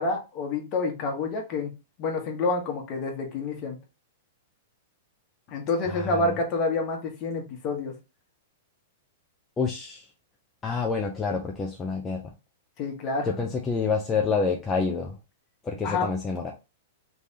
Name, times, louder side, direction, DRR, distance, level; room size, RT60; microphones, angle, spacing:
voice 1, 0.0-1.7 2.0-3.8 5.5-7.9 12.8-13.3 15.8-16.1, left 3 dB, 40° left, 2 dB, 1.2 m, -28 dB
voice 2, 5.8-6.3 9.6-10.0 10.6-12.3 13.2-15.2 15.6-16.5, left 5 dB, 15° left, 0 dB, 0.6 m, -28 dB
3.3 x 3.2 x 2.8 m, 0.28 s
hypercardioid pair, 130°, 0 cm